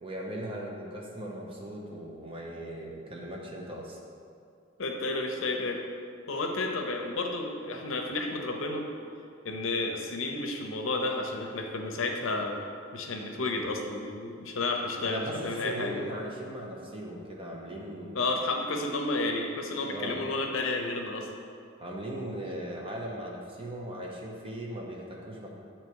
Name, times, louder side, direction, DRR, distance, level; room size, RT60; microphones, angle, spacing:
voice 1, 0.0-4.0 15.0-18.2 19.8-20.2 21.8-25.5, right 1 dB, 25° right, -2 dB, 0.8 m, -38 dB
voice 2, 4.8-5.8 6.3-8.9 9.4-12.6 12.9-16.0 18.1-21.3, left 2 dB, 75° left, 3 dB, 0.6 m, -31 dB
8.0 x 2.9 x 4.6 m, 2.4 s
head